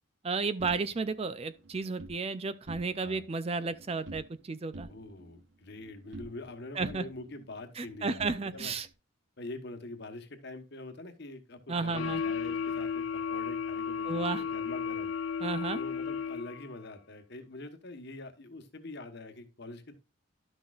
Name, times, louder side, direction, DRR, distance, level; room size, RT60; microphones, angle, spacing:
voice 1, 0.2-4.9 6.8-7.1 7.8-8.9 11.7-12.2 14.1-14.4 15.4-15.8, right 4 dB, 25° right, 0.4 m, -33 dB
sound 1, 0.6-2.2 2.6-3.2 3.5-4.4 4.7-6.5 6.8-8.9, right 2 dB, 60° right, 1.0 m, -48 dB
voice 2, 4.9-8.2 8.5-8.7 9.4-15.1 15.7-20.0, left 2 dB, 50° left, 1.2 m, -44 dB
sound 2, 11.9-16.7, left 6 dB, 75° left, 1.0 m, -34 dB
12.0 x 6.3 x 2.4 m
head